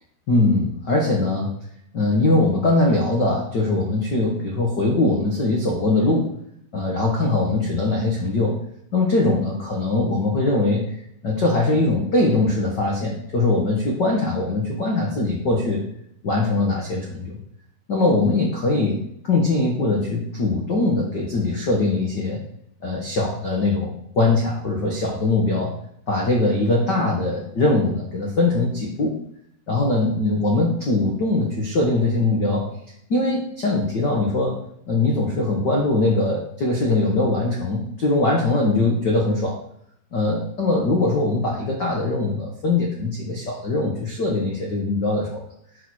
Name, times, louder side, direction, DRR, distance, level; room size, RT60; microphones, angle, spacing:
voice 1, 0.3-1.5 1.9-6.3 6.7-8.6 8.9-10.9 11.2-15.8 16.2-17.4 17.9-19.0 19.3-22.4 22.8-25.7 26.1-29.1 29.7-32.7 33.1-34.6 34.9-39.6 40.1-45.4, left 2 dB, 80° left, -1 dB, 0.9 m, -21 dB
8.9 x 5.2 x 6.3 m, 0.72 s
omnidirectional pair, 4.4 m